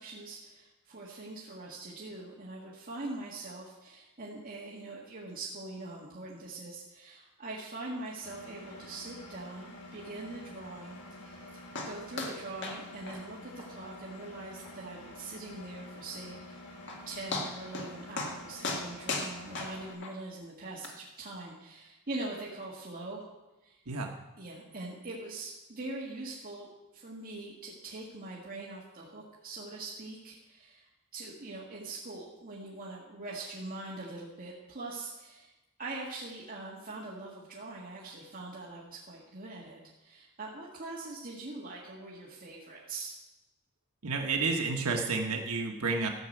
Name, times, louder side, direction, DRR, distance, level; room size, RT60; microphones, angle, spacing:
voice 1, 0.0-11.6 11.8-16.7 17.1-23.3 23.6-23.8 24.4-35.5 35.8-43.2, right 2 dB, 40° right, -5 dB, 1.8 m, -43 dB
Engine, 8.2-19.9, left 1 dB, 75° left, 3.5 m, -48 dB
sound 1, 11.7-11.9 12.2-12.4 12.6-12.8 13.1-13.2 13.6-13.7 14.1-14.2 14.6-14.7 16.4-16.5 16.9-17.0 17.3-17.9 18.2-18.4 18.6-20.1 20.8-20.9, left 3 dB, 55° left, 1.8 m, -35 dB
voice 2, 44.0-46.1, right 4 dB, 80° right, 2 dB, 1.3 m, -30 dB
14.5 x 5.9 x 7.9 m, 1.1 s
head